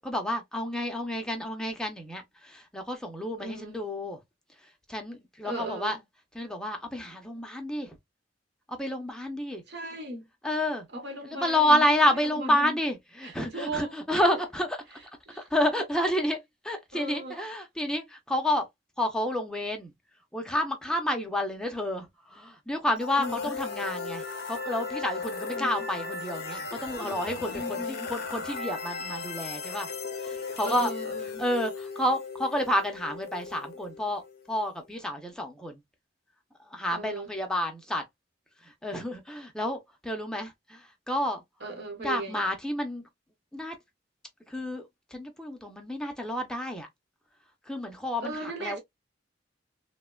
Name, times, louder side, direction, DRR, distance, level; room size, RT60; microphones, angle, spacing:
voice 1, 0.0-4.2 4.9-6.0 6.3-8.0 8.7-9.6 10.4-10.9 11.2-14.8 15.3-18.7 19.0-19.9 20.3-29.9 30.2-30.9 31.4-34.2 34.5-35.8 36.7-38.0 38.6-41.4 42.0-43.0 43.5-43.8 44.5-44.8 45.1-46.9 47.7-48.8, left 1 dB, 5° left, 0.5 m, -30 dB
voice 2, 3.4-3.8 5.4-6.0 9.7-10.3 10.9-12.8 13.2-14.2 15.3-15.5 16.9-17.4 23.2-23.5 25.5-25.8 27.5-28.1 30.6-31.4 36.9-37.3 41.6-42.4 48.2-48.8, right 1 dB, 65° right, 1.0 m, -37 dB
sound 1, 23.0-34.8, left 4 dB, 60° left, 0.5 m, -36 dB
3.0 x 2.1 x 2.2 m
head